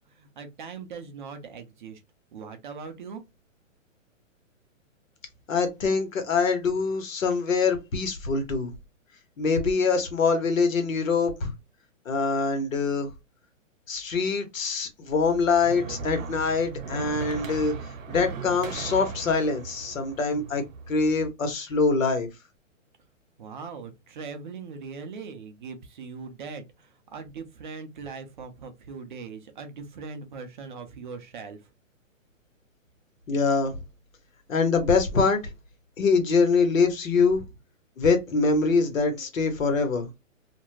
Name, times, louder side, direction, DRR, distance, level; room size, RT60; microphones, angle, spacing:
voice 1, 0.2-2.0 2.3-3.2 23.4-31.6, right 5 dB, 40° right, 0.5 m, -40 dB
voice 2, 5.5-8.7 9.4-11.5 12.1-13.1 13.9-17.7 18.1-22.3 33.3-33.8 34.5-35.4 36.0-37.4 38.0-40.1, left 4 dB, 75° left, 1.1 m, -24 dB
sound 1, 15.1-21.3, right 5 dB, 70° right, 0.8 m, -38 dB
2.4 x 2.2 x 3.0 m
hypercardioid pair, 145°, 40 cm